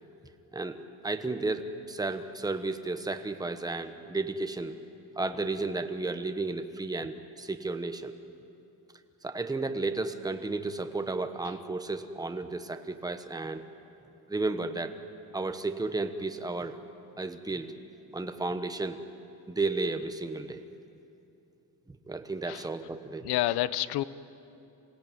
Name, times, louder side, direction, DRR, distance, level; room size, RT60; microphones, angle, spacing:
voice 1, 0.5-4.7 5.2-8.1 9.2-13.6 14.3-14.9 15.3-16.8 17.2-17.7 18.1-19.0 19.5-20.6 21.9-23.3, right 3 dB, 10° right, 8 dB, 1.1 m, -33 dB
voice 2, 23.2-24.0, left 15 dB, 85° left, 16 dB, 0.8 m, -29 dB
28.0 x 17.0 x 9.2 m, 2.8 s
cardioid pair, 135°, 38 cm